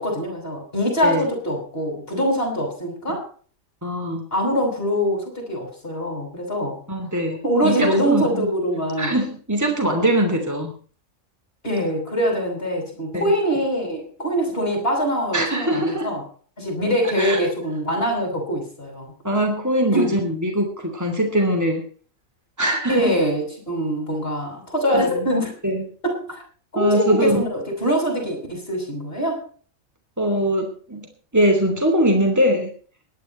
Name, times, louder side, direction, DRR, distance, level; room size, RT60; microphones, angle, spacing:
voice 1, 0.0-3.3 4.3-6.8 7.4-9.1 11.6-16.2 16.6-19.1 19.9-20.1 22.9-25.6 26.0-26.2 26.7-29.4, equal, 45° left, 3 dB, 7.2 m, -23 dB
voice 2, 3.8-4.3 6.9-8.5 9.0-10.7 13.1-13.3 15.3-16.1 17.2-17.4 19.2-21.8 22.6-23.1 24.9-25.3 25.6-25.9 26.8-27.4 30.2-31.1 31.3-32.7, right 1 dB, 10° right, 3 dB, 3.0 m, -22 dB
18.0 x 11.5 x 4.4 m, 0.42 s
omnidirectional pair, 1.4 m